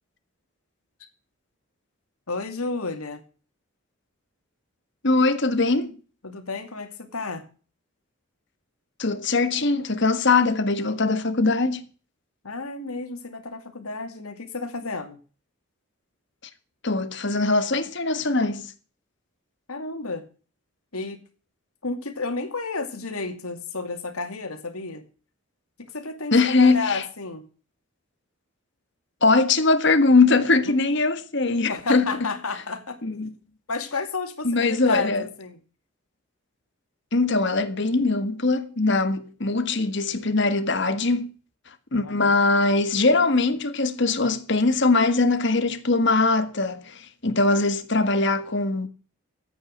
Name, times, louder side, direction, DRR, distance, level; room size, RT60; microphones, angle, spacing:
voice 1, 2.3-3.2 6.2-7.4 12.4-15.2 19.7-20.2 20.9-21.2 21.8-25.0 25.9-27.4 30.7-30.8 31.7-33.0 33.7-35.6 42.0-42.4, left 3 dB, 90° left, 2.6 m, -31 dB
voice 2, 5.0-5.9 9.0-11.8 16.8-18.7 26.3-27.0 29.2-32.2 33.0-33.3 34.4-35.2 37.1-41.3 41.9-48.9, left 3 dB, 55° left, 1.6 m, -21 dB
14.0 x 9.0 x 6.5 m
head